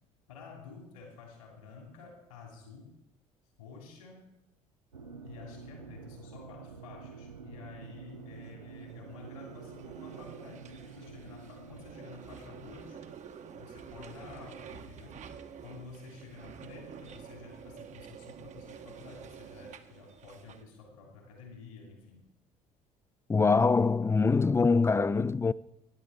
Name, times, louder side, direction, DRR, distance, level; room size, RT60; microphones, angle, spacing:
voice 1, 0.3-2.9 3.6-4.3 5.2-13.0 13.5-15.2 15.6-22.2, left 5 dB, 75° left, 2.9 m, -50 dB
sound 1, 4.9-11.9, right 6 dB, 85° right, 0.6 m, -48 dB
sound 2, 8.5-20.6, right 7 dB, 40° right, 1.1 m, -49 dB
voice 2, 23.3-25.5, left 4 dB, 15° left, 0.4 m, -24 dB
15.5 x 10.5 x 4.0 m
figure-of-eight pair, 55°, 18 cm